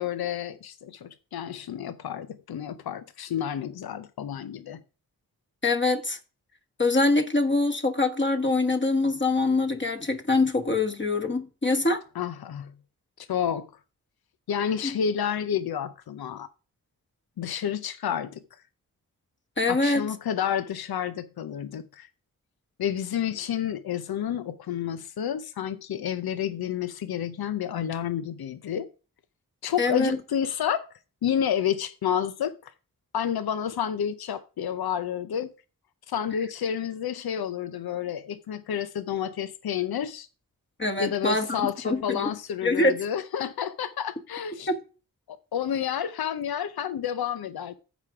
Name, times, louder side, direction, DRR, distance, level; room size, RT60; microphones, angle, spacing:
voice 1, 0.0-4.8 12.1-12.7 13.2-13.7 14.5-16.5 17.4-18.4 19.7-22.1 22.8-28.9 29.6-30.9 31.2-32.7 33.1-35.5 36.1-40.3 41.0-44.7 45.3-47.7, left 9 dB, 85° left, 0.7 m, -30 dB
voice 2, 5.6-6.2 6.8-12.0 19.6-20.1 29.8-30.2 40.8-42.3 42.6-43.0 44.7-44.8, left 2 dB, 30° left, 1.5 m, -24 dB
14.5 x 5.1 x 4.8 m
wide cardioid pair, 75°, 36 cm